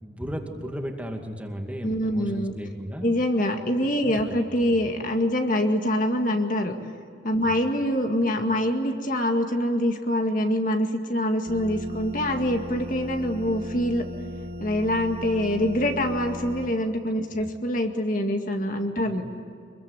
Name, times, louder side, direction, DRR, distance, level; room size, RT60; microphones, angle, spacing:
voice 1, 0.0-3.2 4.0-4.4 4.7-4.8 7.4-7.5 17.4-17.5 19.1-19.2, equal, 10° right, 2 dB, 2.3 m, -35 dB
voice 2, 1.8-2.5 3.0-6.8 7.2-14.1 14.6-19.2, left 1 dB, 45° left, 4 dB, 2.0 m, -25 dB
sound 1, 11.5-16.7, left 1 dB, 55° right, 1.6 m, -37 dB
26.5 x 22.0 x 9.9 m, 2.4 s
head